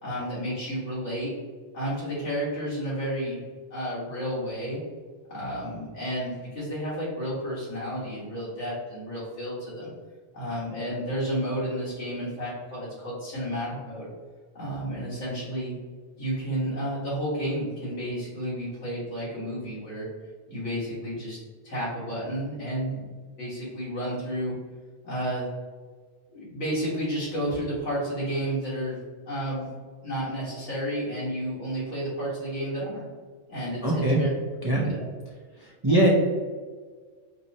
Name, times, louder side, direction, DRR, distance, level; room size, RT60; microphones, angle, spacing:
voice 1, 0.0-1.3 1.7-3.4 3.7-4.8 5.3-9.9 10.3-14.1 14.5-15.7 16.2-20.1 20.5-21.4 21.6-23.1 23.4-24.5 25.0-25.5 26.3-29.0 29.3-29.7 30.0-33.1 33.5-34.3 34.8-35.1 35.8-36.0, equal, 85° left, -8 dB, 1.9 m, -31 dB
voice 2, 33.8-34.2 34.6-34.9 35.8-36.1, right 1 dB, 35° right, -4 dB, 0.4 m, -21 dB
5.7 x 2.0 x 2.7 m, 1.5 s
omnidirectional pair, 1.2 m